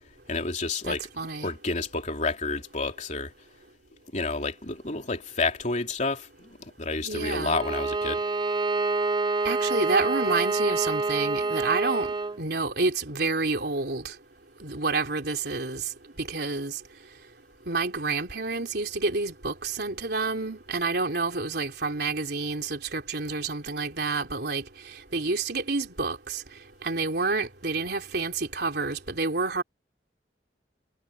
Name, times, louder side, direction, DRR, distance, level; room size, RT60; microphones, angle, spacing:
voice 1, 0.3-1.0 1.4-3.3 4.1-8.2, left 3 dB, 45° left, 3.2 m, -30 dB
voice 2, 0.8-1.5 7.0-7.6 9.4-12.1 12.4-14.1 14.6-15.8 16.2-16.8 17.7-24.6 25.1-26.4 26.8-29.6, right 3 dB, 65° right, 3.7 m, -29 dB
Bowed string instrument, 7.5-12.4, right 3 dB, 25° right, 0.6 m, -27 dB
head